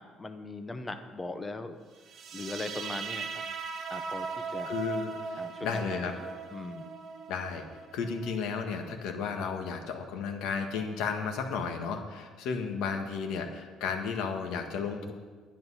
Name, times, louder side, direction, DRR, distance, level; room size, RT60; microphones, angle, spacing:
voice 1, 0.0-1.8 2.3-3.4 3.9-4.7 5.4-6.1 6.5-6.9, left 2 dB, 15° left, 8 dB, 0.7 m, -39 dB
sound 1, 2.1-9.1, right 5 dB, 40° right, 1.1 m, -39 dB
voice 2, 4.6-6.1 7.3-7.6 7.9-15.1, left 5 dB, 75° left, 4 dB, 1.6 m, -33 dB
10.5 x 10.5 x 5.7 m, 1.4 s
cardioid pair, 160°, 0 cm